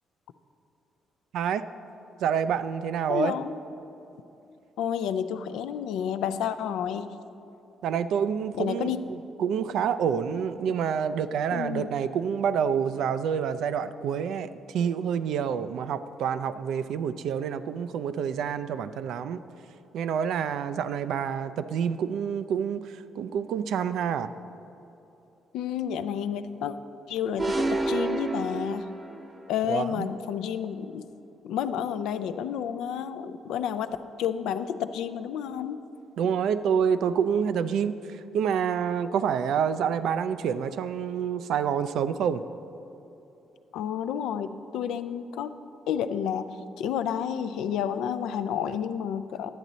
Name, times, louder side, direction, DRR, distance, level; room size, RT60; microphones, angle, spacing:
voice 1, 2.2-3.3 7.8-19.4 19.9-24.3 29.7-30.1 36.2-42.4, right 7 dB, 80° right, 12 dB, 0.3 m, -28 dB
voice 2, 3.1-3.6 4.8-7.2 8.5-9.0 11.5-11.9 25.5-26.8 27.1-28.8 29.5-31.0 31.4-33.9 34.2-35.8 36.2-36.3 43.7-45.5 45.9-46.5 46.8-49.5, left 8 dB, 85° left, 11 dB, 0.3 m, -30 dB
sound 1, 27.4-29.4, right 2 dB, 25° right, 0.6 m, -29 dB
10.5 x 7.4 x 4.0 m, 2.9 s
cardioid pair, 75°, 0 cm